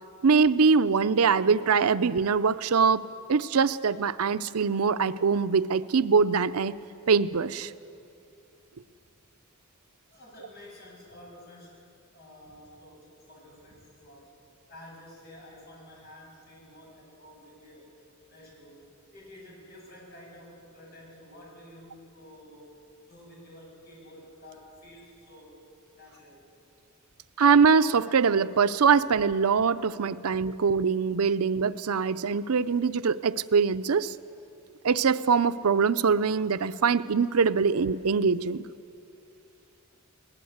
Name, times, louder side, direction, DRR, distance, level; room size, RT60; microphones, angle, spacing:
voice 1, 0.2-3.0 3.3-6.7 7.1-7.7 27.4-34.1 34.8-38.6, right 5 dB, 90° right, 14 dB, 0.6 m, -23 dB
voice 2, 10.1-14.3 14.7-17.9 18.3-18.9 19.1-25.6 25.9-26.5 30.5-30.6, left 1 dB, 45° left, -3 dB, 7.5 m, -50 dB
21.5 x 19.0 x 8.0 m, 2.7 s
head